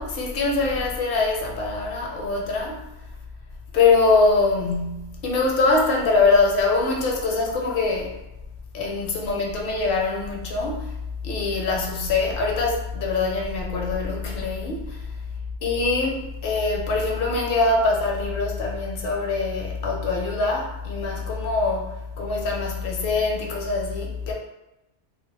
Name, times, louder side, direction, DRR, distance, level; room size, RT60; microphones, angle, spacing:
voice 1, 0.0-2.8 3.7-8.2 8.7-10.9 11.2-15.1 15.6-24.3, left 3 dB, 60° left, -1 dB, 0.7 m, -23 dB
2.3 x 2.0 x 3.1 m, 0.95 s
omnidirectional pair, 1.2 m